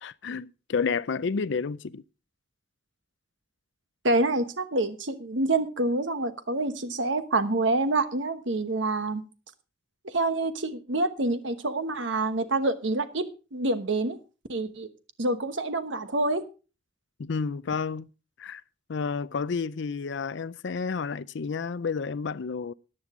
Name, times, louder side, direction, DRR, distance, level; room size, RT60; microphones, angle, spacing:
voice 1, 0.0-2.0 17.2-18.1 18.4-18.6 18.9-22.7, left 5 dB, 60° left, 0.5 m, -30 dB
voice 2, 4.0-9.2 10.0-13.3 13.5-14.2 14.5-14.9 15.2-16.4, right 2 dB, 65° right, 1.1 m, -27 dB
14.5 x 9.6 x 3.7 m
head